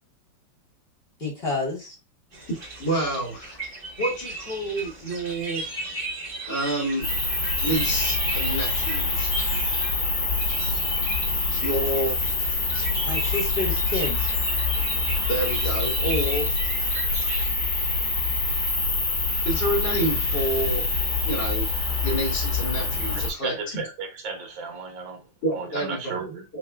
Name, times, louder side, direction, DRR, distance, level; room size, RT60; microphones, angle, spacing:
voice 1, 1.2-2.0 13.0-14.3, left 3 dB, 35° left, 1.2 m, -29 dB
sound 1, 2.3-17.5, right 2 dB, 30° right, 1.5 m, -36 dB
voice 2, 2.8-3.6 4.0-5.7 6.4-7.1 7.6-9.3 11.6-12.1 15.3-16.5 19.4-20.8 21.3-21.7 22.0-23.8 25.4-26.3 26.5-26.6, right 1 dB, 65° left, 2.7 m, -28 dB
sound 2, 7.0-23.3, left 3 dB, 80° left, 3.3 m, -25 dB
voice 3, 23.4-25.2 25.5-26.4, right 4 dB, 75° right, 1.8 m, -34 dB
6.5 x 2.8 x 2.3 m
omnidirectional pair, 2.1 m